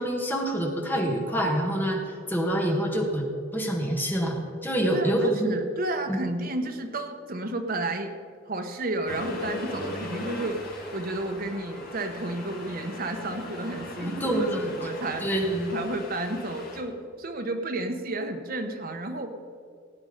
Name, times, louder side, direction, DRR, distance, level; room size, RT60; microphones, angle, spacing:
voice 1, 0.0-2.0 2.3-5.5 6.1-6.2 14.0-14.7 15.2-15.7, right 1 dB, 10° left, 0 dB, 1.6 m, -26 dB
voice 2, 4.9-8.1 8.5-14.5 14.8-15.2 15.7-19.3, right 2 dB, 45° right, 5 dB, 1.2 m, -31 dB
Accelerating revving vroom, 9.1-16.8, left 2 dB, 50° left, 2.0 m, -39 dB
16.5 x 8.8 x 5.2 m, 2.2 s
head